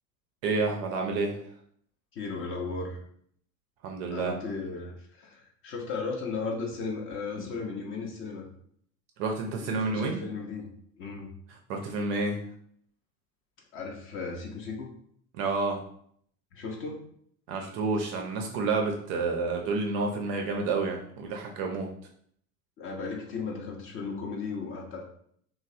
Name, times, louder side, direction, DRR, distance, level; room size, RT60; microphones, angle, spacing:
voice 1, 0.4-1.4 3.8-4.3 9.2-10.2 11.7-12.4 15.3-15.8 17.5-21.9, right 3 dB, 40° right, 2 dB, 0.4 m, -29 dB
voice 2, 2.1-3.0 4.1-8.5 9.6-10.7 11.0-11.3 13.7-14.9 16.5-17.0 22.8-25.0, left 4 dB, 30° left, 1 dB, 0.5 m, -35 dB
3.0 x 2.1 x 2.5 m, 0.64 s
figure-of-eight pair, 75°, 46 cm